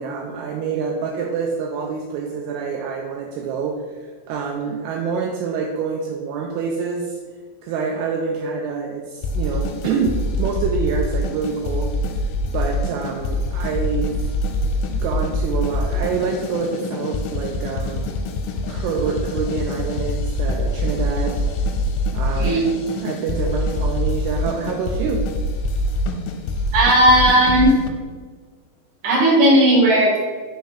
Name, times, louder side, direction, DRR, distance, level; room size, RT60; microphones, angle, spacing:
voice 1, 0.0-3.8 4.3-7.2 7.6-11.9 12.5-14.1 14.9-18.1 18.7-21.4 22.1-22.6 23.0-25.2, right 5 dB, 85° right, 0 dB, 2.4 m, -26 dB
sound 1, 9.2-27.9, left 1 dB, 85° left, 3.0 m, -24 dB
voice 2, 26.7-27.7 29.0-30.2, right 1 dB, 50° right, -4 dB, 2.7 m, -15 dB
6.5 x 4.0 x 4.8 m, 1.5 s
omnidirectional pair, 5.4 m